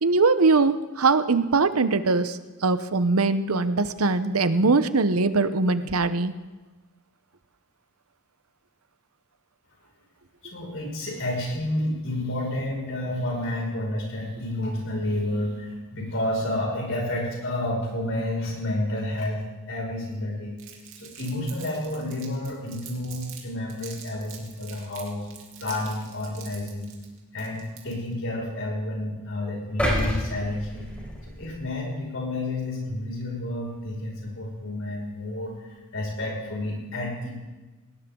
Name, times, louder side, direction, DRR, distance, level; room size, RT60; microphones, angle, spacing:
voice 1, 0.0-6.3, right 3 dB, 90° right, 12 dB, 0.9 m, -22 dB
voice 2, 10.4-20.6 21.0-25.3 25.6-26.9 27.3-30.9 31.4-37.4, left 1 dB, 65° left, -2 dB, 5.9 m, -30 dB
Crumpling crinkling, 20.6-23.4 23.7-28.1, right 8 dB, 65° right, 3.1 m, -45 dB
sound 1, 29.8-32.0 32.4-32.6, equal, 5° left, 4.6 m, -29 dB
19.0 x 19.0 x 3.9 m, 1.2 s
head